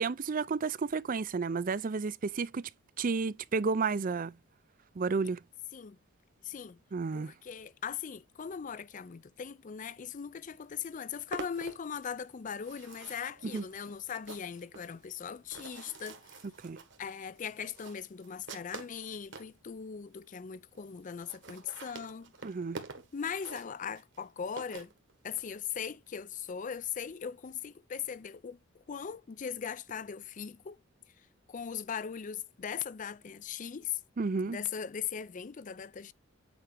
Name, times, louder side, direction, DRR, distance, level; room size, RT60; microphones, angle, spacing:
voice 1, 0.0-2.7 3.0-4.3 5.0-5.4 6.9-7.3 13.4-13.6 16.6-16.8 22.4-22.8 34.2-34.6, right 4 dB, 40° right, 0.4 m, -32 dB
voice 2, 6.4-6.8 7.1-16.2 17.0-22.3 23.1-24.9 25.2-30.8 31.5-34.0 34.5-36.1, left 7 dB, 40° left, 0.4 m, -39 dB
sound 1, 10.4-10.5 10.7-19.6 20.2-20.3 20.5-20.6 20.8-20.9 21.1-25.5, right 3 dB, 60° right, 1.5 m, -48 dB
8.6 x 4.9 x 3.4 m
head